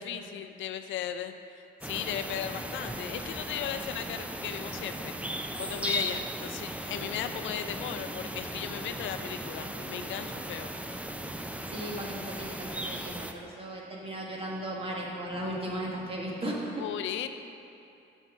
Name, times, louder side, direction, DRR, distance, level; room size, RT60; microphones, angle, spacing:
voice 1, 0.0-1.3 1.8-10.7 16.8-17.3, left 9 dB, 75° left, 9 dB, 0.5 m, -36 dB
sound 1, 1.8-13.3, right 1 dB, 5° right, 0.4 m, -37 dB
voice 2, 11.7-16.7, right 1 dB, 30° right, -3 dB, 1.5 m, -36 dB
5.8 x 5.5 x 6.0 m, 2.6 s
cardioid pair, 90°, 20 cm